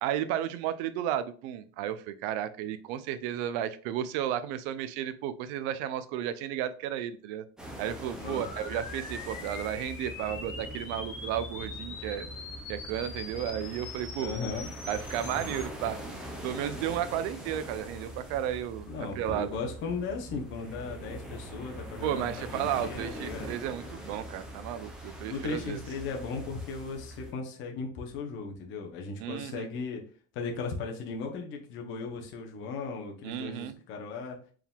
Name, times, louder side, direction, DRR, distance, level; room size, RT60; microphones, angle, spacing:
voice 1, 0.0-7.4 7.8-12.3 12.7-14.3 14.9-16.0 16.4-18.9 19.2-19.6 22.0-25.8 29.2-29.7 33.2-33.7, right 10 dB, 65° right, 13 dB, 0.5 m, -33 dB
sound 1, 7.6-27.3, right 1 dB, ahead, 0.3 m, -43 dB
sound 2, 8.2-15.6, left 4 dB, 65° left, 1.6 m, -43 dB
voice 2, 8.2-8.5 14.2-14.7 18.9-23.5 25.3-30.0 30.3-34.4, left 4 dB, 35° left, 2 dB, 0.7 m, -37 dB
4.5 x 3.6 x 2.3 m, 0.42 s
cardioid pair, 170°, 36 cm